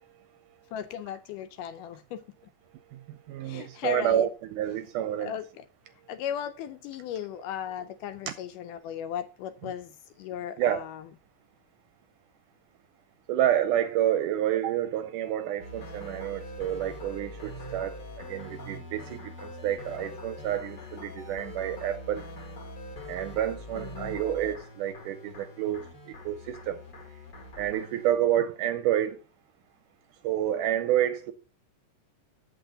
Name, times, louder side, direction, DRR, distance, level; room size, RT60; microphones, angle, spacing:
voice 1, 0.7-2.2 3.4-4.3 5.2-5.7 6.1-11.1 23.8-24.2, left 9 dB, 80° left, 2.0 m, -36 dB
voice 2, 3.3-5.3 10.6-10.8 13.3-17.9 18.3-22.2 23.1-25.9 26.3-26.8 27.6-29.2 30.2-31.3, right 11 dB, 80° right, 1.9 m, -28 dB
sound 1, 15.6-28.1, left 1 dB, 45° left, 1.4 m, -43 dB
8.1 x 7.1 x 3.9 m
omnidirectional pair, 4.1 m